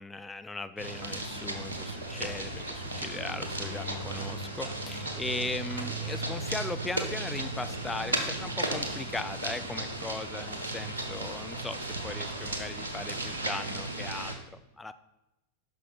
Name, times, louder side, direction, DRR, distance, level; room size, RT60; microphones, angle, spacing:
voice 1, 0.0-14.9, left 3 dB, 10° left, 10 dB, 0.4 m, -38 dB
sound 1, 0.8-14.3, right 2 dB, 75° right, 1.0 m, -35 dB
6.1 x 5.8 x 4.5 m, 0.95 s
figure-of-eight pair, 90°, 0 cm